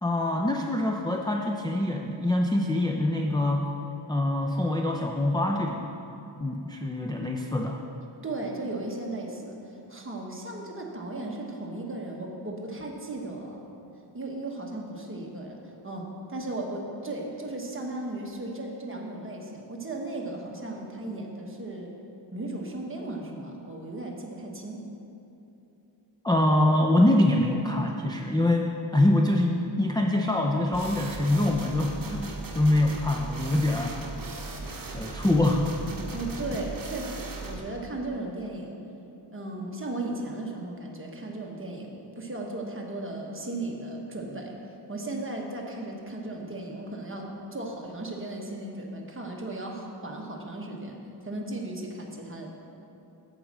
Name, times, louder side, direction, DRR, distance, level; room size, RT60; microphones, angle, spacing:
voice 1, 0.0-3.7 4.1-5.9 6.4-7.8 26.2-34.0 34.9-35.7, left 1 dB, 10° left, 1 dB, 0.4 m, -24 dB
voice 2, 8.2-13.6 14.1-15.6 15.8-21.9 22.3-24.8 36.1-38.8 39.3-44.6 44.9-51.0 51.2-52.5, right 2 dB, 30° right, 0 dB, 1.2 m, -36 dB
sound 1, 30.7-37.6, right 3 dB, 50° right, 1.1 m, -38 dB
7.9 x 5.2 x 7.3 m, 2.9 s
wide cardioid pair, 105°, 44 cm